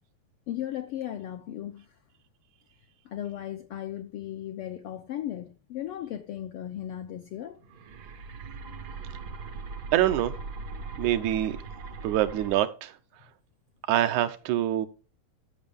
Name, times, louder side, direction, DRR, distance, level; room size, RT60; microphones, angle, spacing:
voice 1, 0.5-1.8 3.1-7.6, left 11 dB, 80° left, 1.3 m, -36 dB
sound 1, 7.6-12.6, right 4 dB, 70° right, 0.9 m, -40 dB
voice 2, 9.9-10.3 11.0-11.6 12.0-12.9 13.9-14.9, right 12 dB, 90° right, 2.3 m, -25 dB
14.5 x 6.2 x 3.6 m
omnidirectional pair, 3.3 m